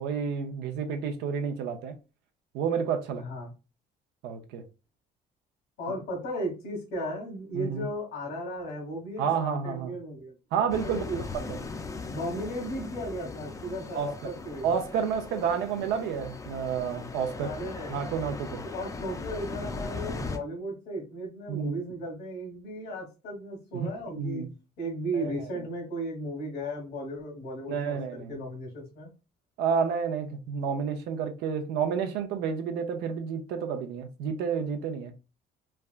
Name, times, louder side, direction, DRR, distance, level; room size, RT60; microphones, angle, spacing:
voice 1, 0.0-2.0 2.5-3.2 4.2-4.6 7.5-7.9 9.2-9.9 10.5-11.0 11.3-11.6 13.9-14.3 14.6-17.5 17.9-18.6 21.5-21.8 23.7-24.5 25.1-25.3 27.7-28.3 29.6-35.1, right 6 dB, 90° right, 0.6 m, -30 dB
voice 2, 3.2-3.5 5.8-11.2 12.1-14.8 17.4-18.0 18.6-24.4 24.8-29.1, equal, 80° left, 1.4 m, -36 dB
sound 1, 10.7-20.4, left 3 dB, 20° left, 0.4 m, -39 dB
3.3 x 2.3 x 2.4 m
cardioid pair, 110°, 17 cm